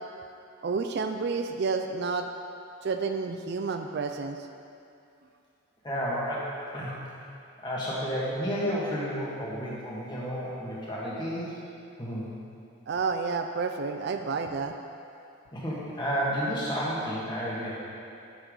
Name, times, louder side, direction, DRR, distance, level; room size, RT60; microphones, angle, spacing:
voice 1, 0.6-2.3 2.8-4.5 12.9-14.8, right 4 dB, 50° right, 6 dB, 0.4 m, -30 dB
voice 2, 5.8-6.9 7.6-11.5 12.0-12.3 15.5-17.8, equal, 20° left, -6 dB, 1.7 m, -31 dB
11.0 x 6.8 x 3.9 m, 2.6 s
head